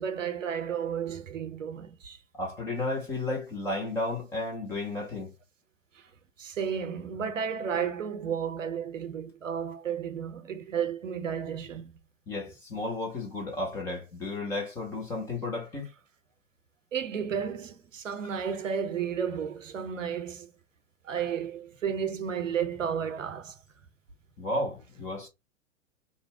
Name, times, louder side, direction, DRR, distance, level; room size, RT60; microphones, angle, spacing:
voice 1, 0.0-2.2 6.4-11.9 16.9-20.5 21.0-23.6, right 7 dB, 80° right, 0.7 m, -32 dB
voice 2, 2.3-5.3 12.3-15.9 24.4-25.3, left 2 dB, 10° left, 0.3 m, -33 dB
2.6 x 2.0 x 3.5 m
figure-of-eight pair, 105°, 37 cm